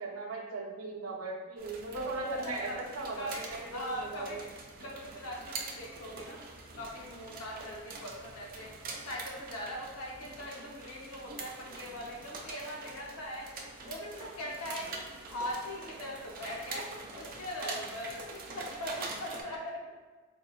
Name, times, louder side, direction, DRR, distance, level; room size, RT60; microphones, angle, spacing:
voice 1, 0.0-4.4, right 3 dB, 75° right, -4 dB, 0.8 m, -38 dB
sound 1, 1.6-19.4, right 3 dB, 40° right, 0.4 m, -45 dB
voice 2, 2.4-2.8 3.2-3.4 3.7-4.4 4.8-6.4 6.7-8.7 9.1-13.5 13.8-15.0 15.3-19.9, left 1 dB, 75° left, -2 dB, 0.8 m, -41 dB
4.7 x 2.6 x 2.3 m, 1.4 s
head